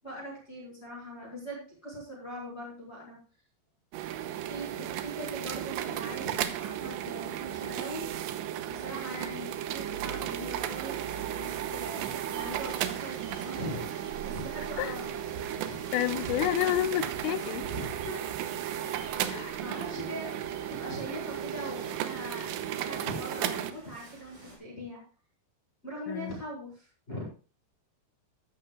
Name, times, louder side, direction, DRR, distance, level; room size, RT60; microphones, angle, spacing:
voice 1, 0.0-3.2 4.4-8.1 8.7-11.1 11.4-13.9 14.2-15.2 17.6-18.3 19.1-20.4 20.7-22.5 22.8-25.0 25.8-27.2, equal, 10° left, -3 dB, 6.1 m, -41 dB
sound 1, 3.9-23.7, right 11 dB, 80° right, 2.8 m, -35 dB
sound 2, 10.0-24.6, right 2 dB, 40° right, 8.0 m, -51 dB
sound 3, 12.0-23.4, right 5 dB, 55° right, 3.4 m, -50 dB
voice 2, 15.9-17.7 19.3-19.6 26.1-26.4, left 14 dB, 85° left, 13 dB, 3.2 m, -30 dB
15.0 x 13.0 x 2.5 m, 0.36 s
omnidirectional pair, 5.8 m